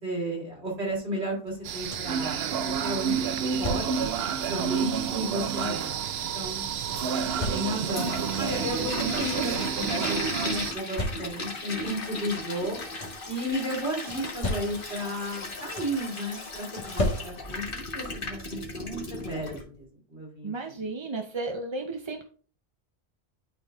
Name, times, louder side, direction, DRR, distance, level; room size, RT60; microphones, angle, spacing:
voice 1, 0.0-3.2 3.6-3.9 4.4-5.9 6.3-6.6 7.5-12.8 13.3-20.9, equal, 90° right, -3 dB, 3.2 m, -34 dB
sound 1, 1.5-2.3 3.2-4.2 5.1-6.0 6.9-8.1 8.7-8.8 9.0-9.6 10.5-11.6 12.6-13.4 14.1-15.1 15.4-16.1 16.8-17.8 19.1-19.2 19.7-19.9, left 1 dB, 35° left, 1.1 m, -35 dB
Thai Jungle Monk, 1.6-10.7, right 7 dB, 70° right, 0.8 m, -29 dB
Toilet flush, 6.9-19.6, left 2 dB, 55° left, 1.5 m, -36 dB
voice 2, 20.4-22.2, right 3 dB, 35° right, 4 dB, 0.5 m, -33 dB
11.5 x 4.0 x 2.4 m, 0.42 s
omnidirectional pair, 1.1 m